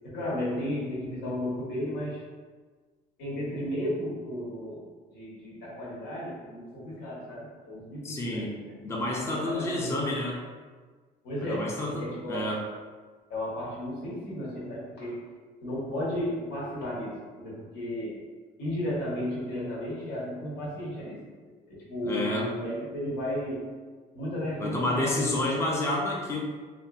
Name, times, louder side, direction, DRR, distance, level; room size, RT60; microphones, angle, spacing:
voice 1, 0.0-2.2 3.2-4.8 5.1-8.7 9.1-10.1 11.2-12.5 13.3-15.3 15.6-18.2 18.6-21.3 21.7-23.7 24.1-25.7, left 1 dB, 85° left, -6 dB, 1.0 m, -34 dB
voice 2, 8.0-8.5 8.8-10.4 11.4-12.6 22.0-22.5 24.6-26.4, left 1 dB, 15° left, -3 dB, 0.4 m, -29 dB
2.6 x 2.5 x 2.3 m, 1.4 s
cardioid pair, 110°, 17 cm